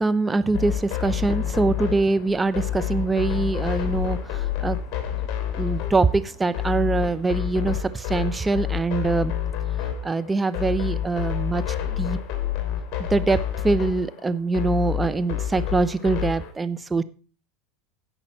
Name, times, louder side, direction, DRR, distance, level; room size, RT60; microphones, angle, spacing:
voice 1, 0.0-4.8 5.6-9.3 10.0-11.6 12.0-12.2 13.1-17.0, right 3 dB, 15° right, 13 dB, 0.8 m, -23 dB
sound 1, 0.5-16.5, left 10 dB, 50° left, 3.1 m, -28 dB
sound 2, 2.3-7.4, equal, 10° left, 2.7 m, -46 dB
16.0 x 5.7 x 4.4 m, 0.36 s
hypercardioid pair, 95°, 0 cm